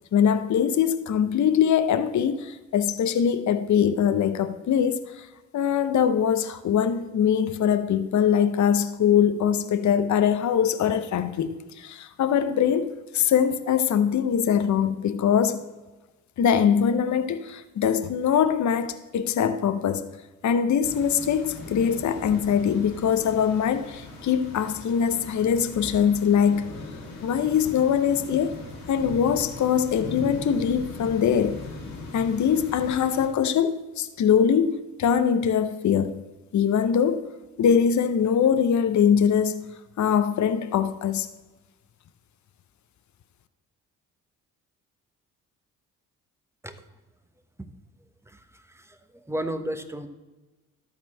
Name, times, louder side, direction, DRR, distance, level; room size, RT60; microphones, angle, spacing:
voice 1, 0.1-5.3 5.5-15.6 16.4-20.1 20.4-26.7 27.2-28.6 28.9-31.6 32.1-36.2 36.5-37.3 37.6-39.7 40.0-41.3, left 8 dB, 45° left, 0.8 m, -22 dB
sound 1, 20.8-33.3, left 3 dB, 85° left, 2.1 m, -40 dB
voice 2, 48.3-50.1, right 1 dB, 5° right, 1.1 m, -34 dB
12.5 x 4.3 x 7.3 m
supercardioid pair, 60°, 39 cm